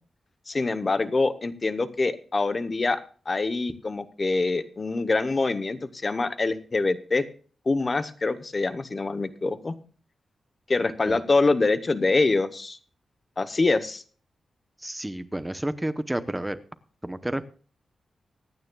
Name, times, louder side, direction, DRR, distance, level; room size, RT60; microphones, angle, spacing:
voice 1, 0.5-7.3 7.6-9.7 10.7-12.8 13.4-14.0, left 3 dB, 35° left, 13 dB, 0.9 m, -25 dB
voice 2, 14.8-16.6 17.0-17.5, right 1 dB, 10° right, 12 dB, 0.7 m, -30 dB
24.0 x 9.4 x 2.3 m, 0.40 s
wide cardioid pair, 120°, 0 cm